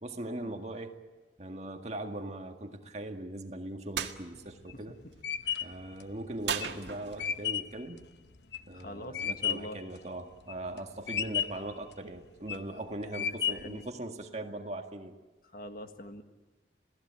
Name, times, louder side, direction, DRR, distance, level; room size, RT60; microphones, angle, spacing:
voice 1, 0.0-0.9 1.4-5.0 5.6-8.1 8.7-15.2, right 1 dB, 40° right, 4 dB, 1.9 m, -40 dB
sound 1, 3.9-4.2 6.4-7.4, right 7 dB, 90° right, 1.8 m, -35 dB
sound 2, 4.3-9.8 10.2-10.8 11.1-11.7 12.2-12.7 13.1-13.8, left 8 dB, 75° left, 1.0 m, -33 dB
voice 2, 8.7-9.8 13.2-13.8 15.5-16.2, left 1 dB, 55° left, 7 dB, 1.6 m, -44 dB
28.0 x 18.0 x 8.9 m, 1.3 s
head